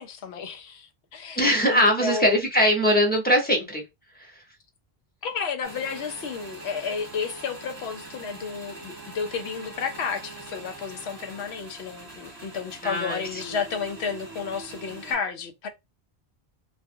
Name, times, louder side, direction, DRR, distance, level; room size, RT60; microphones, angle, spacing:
voice 1, 0.0-1.4 1.7-2.4 5.2-15.7, left 5 dB, 90° left, 0.9 m, -32 dB
voice 2, 1.4-3.8 4.2-4.4 12.8-13.5, equal, 10° left, 0.9 m, -22 dB
Motorcycle / Engine, 5.6-15.1, right 2 dB, 20° right, 0.9 m, -43 dB
2.4 x 2.4 x 2.6 m
omnidirectional pair, 1.1 m